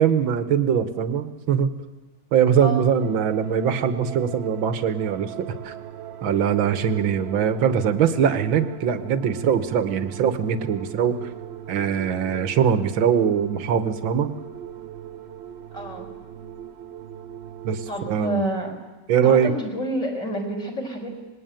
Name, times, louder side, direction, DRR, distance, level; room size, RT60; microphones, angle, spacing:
voice 1, 0.0-1.7 2.3-5.7 6.2-11.3 11.7-14.3 17.6-18.4 19.1-19.5, right 8 dB, 90° right, 11 dB, 2.0 m, -22 dB
sound 1, 3.0-18.1, right 10 dB, 45° right, 0.9 m, -39 dB
voice 2, 15.7-16.1 17.9-18.8 19.2-21.1, right 1 dB, 40° left, 4 dB, 5.0 m, -28 dB
26.0 x 20.5 x 9.1 m, 1.2 s
omnidirectional pair, 2.1 m